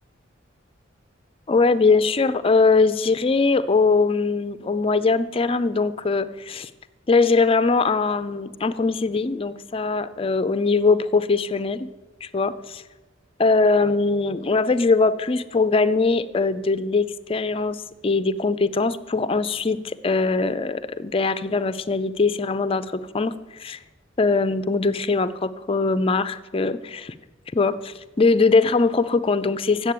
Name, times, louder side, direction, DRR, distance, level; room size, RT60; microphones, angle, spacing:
voice 1, 1.5-6.7 7.1-11.9 12.2-12.8 13.4-23.3 23.6-23.8 24.2-27.1 27.5-29.9, left 4 dB, 30° left, 13 dB, 0.4 m, -21 dB
8.4 x 7.5 x 8.8 m, 1.1 s
head